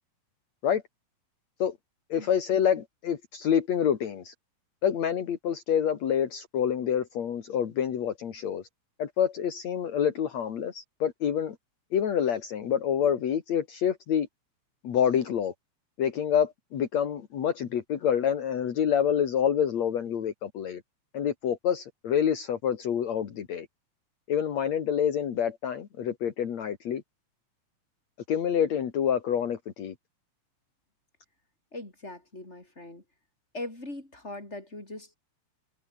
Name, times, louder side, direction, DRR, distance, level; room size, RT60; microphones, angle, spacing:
voice 1, 2.1-4.3 4.8-8.6 9.0-11.6 11.9-14.3 14.8-15.5 16.0-20.8 21.1-23.7 24.3-27.0 28.3-29.9, left 8 dB, 65° left, 3.3 m, -27 dB
voice 2, 31.7-33.0 33.5-35.2, left 2 dB, 20° left, 7.5 m, -40 dB
omnidirectional pair, 3.4 m